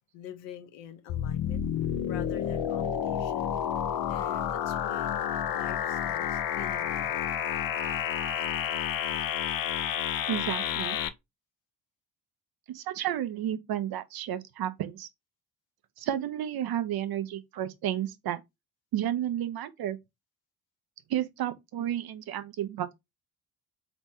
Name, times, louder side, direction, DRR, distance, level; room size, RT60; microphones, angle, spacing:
voice 1, 0.1-1.7 2.1-3.5 4.1-7.3, left 10 dB, 65° left, 1.0 m, -45 dB
sound 1, 1.1-11.1, left 9 dB, 45° left, 0.6 m, -30 dB
voice 2, 10.3-11.0 12.7-15.1 16.0-18.4 18.9-20.0 21.1-22.9, right 11 dB, 50° right, 0.7 m, -32 dB
4.0 x 3.0 x 3.5 m
hypercardioid pair, 45°, 48 cm